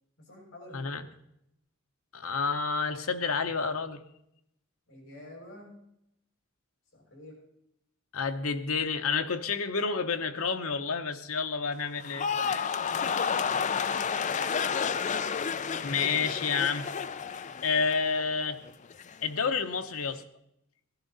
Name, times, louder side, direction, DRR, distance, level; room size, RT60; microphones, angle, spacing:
voice 1, 0.2-0.8 4.9-5.8 6.9-7.4 14.1-15.2, left 1 dB, 60° left, -2 dB, 6.1 m, -49 dB
voice 2, 2.1-4.0 8.1-12.7 15.8-16.8 17.6-18.6 19.2-20.2, left 5 dB, 85° left, 7 dB, 1.0 m, -29 dB
sound 1, 12.0-18.3 18.6-19.1, left 6 dB, 35° left, 0.5 m, -31 dB
16.5 x 11.0 x 4.1 m, 0.79 s
head